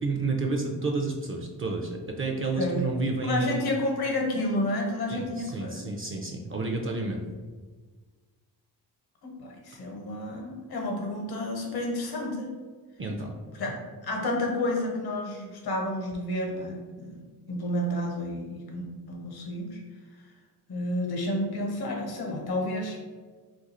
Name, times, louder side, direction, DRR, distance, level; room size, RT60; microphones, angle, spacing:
voice 1, 0.0-3.7 5.1-7.2 13.0-13.3, right 3 dB, 35° right, 1 dB, 0.4 m, -30 dB
voice 2, 3.2-5.8 9.2-12.5 13.5-13.7 14.0-17.2 17.5-19.8 20.7-23.0, left 1 dB, 65° left, 0 dB, 0.9 m, -30 dB
2.5 x 2.3 x 4.1 m, 1.4 s
cardioid pair, 75°, 40 cm